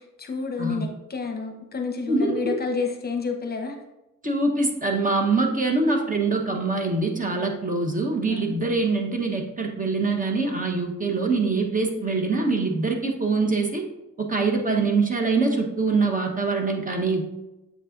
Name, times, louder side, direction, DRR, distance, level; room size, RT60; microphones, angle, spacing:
voice 1, 0.0-3.8 8.3-8.4, left 4 dB, 35° left, 4 dB, 1.0 m, -30 dB
voice 2, 2.1-2.6 4.2-13.8 14.2-17.2, right 3 dB, 25° right, 2 dB, 1.1 m, -24 dB
7.5 x 5.4 x 2.6 m, 0.97 s
cardioid pair, 90°, 30 cm